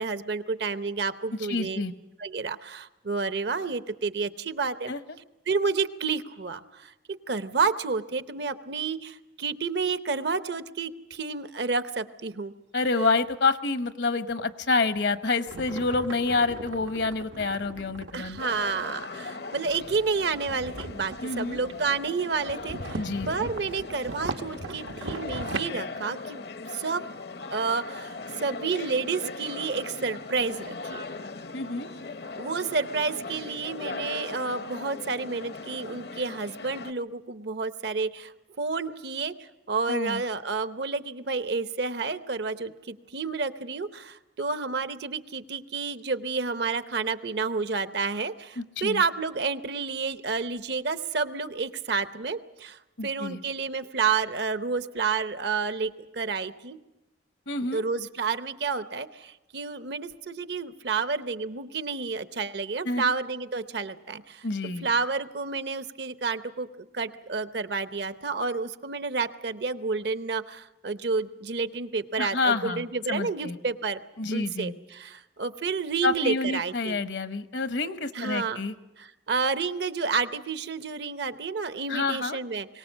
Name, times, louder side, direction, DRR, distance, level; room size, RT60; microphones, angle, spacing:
voice 1, 0.0-1.8 2.2-4.9 5.5-6.9 7.3-12.5 18.1-26.5 26.7-27.1 27.5-31.0 32.4-39.3 39.7-56.8 57.7-64.5 64.8-74.0 74.3-77.1 78.1-78.6 79.0-82.8, right 4 dB, 65° right, 12 dB, 0.8 m, -30 dB
voice 2, 1.5-1.9 4.9-5.0 12.7-18.4 21.2-21.6 22.9-23.5 31.5-31.9 39.9-40.2 48.6-49.0 53.0-53.4 57.5-57.8 62.8-63.1 64.4-64.9 72.2-73.6 74.2-74.7 76.0-78.7 81.9-82.4, left 3 dB, 75° left, 11 dB, 1.0 m, -28 dB
sound 1, 15.5-18.5 19.7-21.9 22.3-25.6, right 3 dB, 90° right, 1.1 m, -39 dB
sound 2, 18.4-36.9, left 3 dB, 55° left, 0.7 m, -39 dB
23.0 x 18.5 x 7.3 m, 0.98 s
head